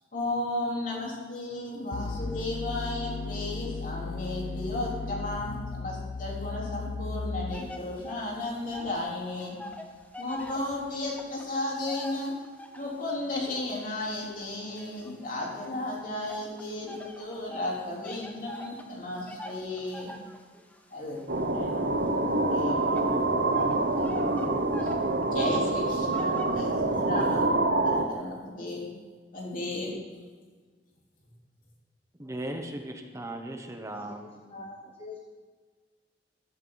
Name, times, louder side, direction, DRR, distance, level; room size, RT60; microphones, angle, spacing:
voice 1, 0.1-9.6 10.2-12.3 12.7-20.1 20.9-23.2 23.9-24.9 25.3-27.5 27.8-28.9 29.3-29.9, left 2 dB, 50° left, -3 dB, 3.7 m, -34 dB
sound 1, 1.9-7.9, left 3 dB, 80° left, 0.7 m, -35 dB
sound 2, 7.5-9.1 9.3-13.0 13.6-15.7 16.3-27.3, left 1 dB, 10° left, 1.2 m, -45 dB
sound 3, 21.3-28.0, right 2 dB, 65° right, 1.1 m, -26 dB
voice 2, 32.2-34.4, right 1 dB, 15° right, 3 dB, 1.0 m, -37 dB
voice 3, 34.5-35.2, left 3 dB, 35° left, 2 dB, 1.1 m, -43 dB
14.5 x 13.5 x 4.0 m, 1.5 s
head